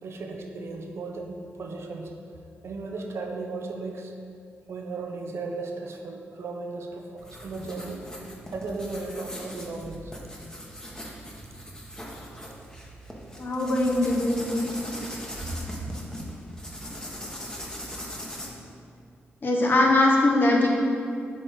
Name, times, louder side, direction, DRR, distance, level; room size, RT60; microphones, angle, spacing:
voice 1, 0.0-2.1 2.6-4.1 4.7-8.1 8.5-10.1, right 3 dB, 70° right, 2 dB, 0.7 m, -35 dB
sound 1, 7.2-18.5, equal, 15° left, 1.2 m, -40 dB
voice 2, 13.4-14.7 19.4-20.7, left 2 dB, 50° left, -1 dB, 1.1 m, -21 dB
7.3 x 3.8 x 3.7 m, 2.5 s
supercardioid pair, 55°, 5 cm